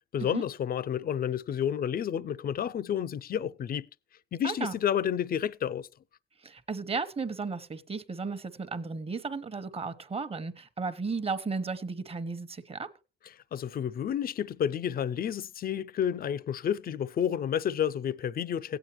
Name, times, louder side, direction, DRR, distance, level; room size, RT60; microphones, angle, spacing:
voice 1, 0.1-3.9 4.3-5.9 13.5-18.8, left 9 dB, 50° left, 0.6 m, -30 dB
voice 2, 4.4-4.7 6.4-12.9, right 4 dB, 30° right, 1.1 m, -34 dB
16.0 x 9.1 x 3.1 m
cardioid pair, 90°, 20 cm